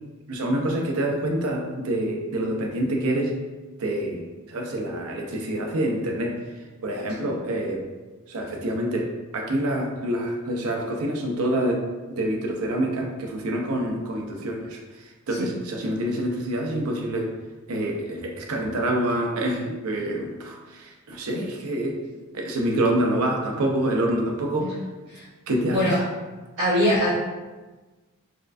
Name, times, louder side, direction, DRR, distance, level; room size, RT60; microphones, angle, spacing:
voice 1, 0.3-3.3 3.8-6.3 6.8-7.8 8.3-9.1 9.3-11.8 12.1-14.8 15.3-17.3 17.7-21.9 22.3-24.7 25.5-25.9, right 1 dB, 80° right, 1 dB, 0.6 m, -26 dB
voice 2, 26.6-27.1, equal, 55° right, -15 dB, 1.4 m, -22 dB
4.3 x 2.5 x 2.4 m, 1.2 s
head